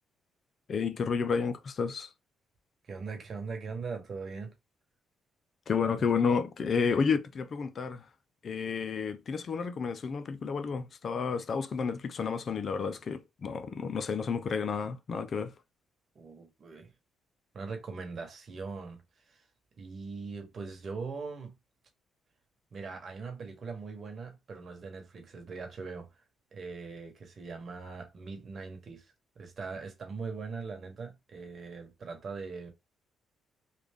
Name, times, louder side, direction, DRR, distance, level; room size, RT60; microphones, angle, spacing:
voice 1, 0.7-2.1 5.7-8.0 8.4-15.5, left 5 dB, 50° left, 0.5 m, -31 dB
voice 2, 2.8-4.5 5.8-6.1 16.1-16.9 17.5-19.0 19.3-19.4 19.8-21.5 22.7-26.2 26.5-32.7, right 4 dB, 50° right, 1.2 m, -41 dB
3.3 x 2.4 x 3.5 m
cardioid pair, 90°, 0 cm